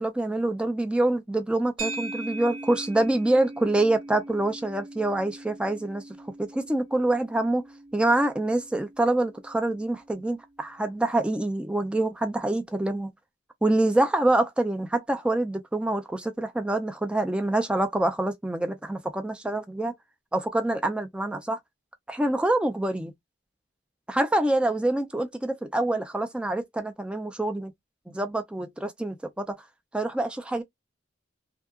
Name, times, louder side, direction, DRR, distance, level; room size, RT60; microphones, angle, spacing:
voice 1, 0.0-13.1 13.6-19.9 20.3-21.6 22.1-23.1 24.1-27.7 28.1-29.7 29.9-30.6, right 1 dB, 5° right, 0.3 m, -26 dB
sound 1, 1.8-10.2, right 2 dB, 80° right, 1.4 m, -41 dB
2.7 x 2.3 x 2.3 m
head